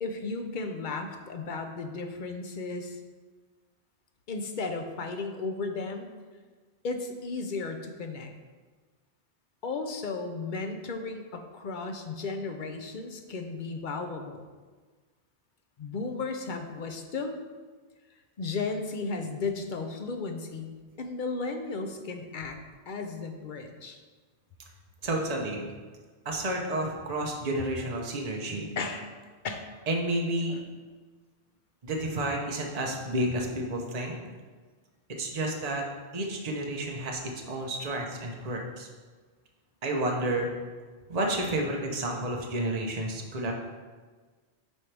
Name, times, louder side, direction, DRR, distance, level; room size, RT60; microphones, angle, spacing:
voice 1, 0.0-3.0 4.3-6.1 6.8-8.3 9.6-14.5 15.8-17.4 18.4-20.7 21.0-22.6 22.9-24.0 28.8-29.1 29.4-29.7 30.5-30.7, left 3 dB, 50° left, 5 dB, 0.8 m, -34 dB
voice 2, 25.0-25.7 26.2-28.7 29.9-30.6 31.8-34.2 35.2-35.9 36.1-37.2 37.5-38.9 39.8-40.5 41.1-43.5, right 1 dB, 40° right, 0 dB, 1.0 m, -30 dB
9.6 x 4.5 x 3.4 m, 1.4 s
omnidirectional pair, 1.1 m